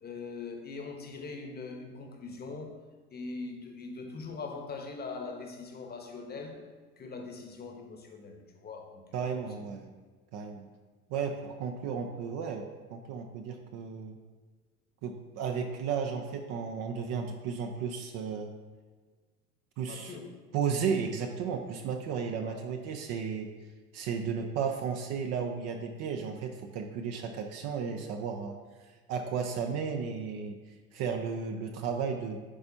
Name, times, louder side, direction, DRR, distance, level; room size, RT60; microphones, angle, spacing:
voice 1, 0.0-2.8 3.1-6.6 7.0-9.4 19.9-20.2 22.4-22.6, left 4 dB, 20° left, 3 dB, 1.0 m, -42 dB
voice 2, 9.1-9.9 10.3-10.7 11.1-14.2 15.0-18.5 19.8-20.2 20.5-23.5 23.9-30.6 30.9-32.4, right 6 dB, 35° right, 5 dB, 0.6 m, -34 dB
11.0 x 4.2 x 2.8 m, 1.4 s
figure-of-eight pair, 75°, 44 cm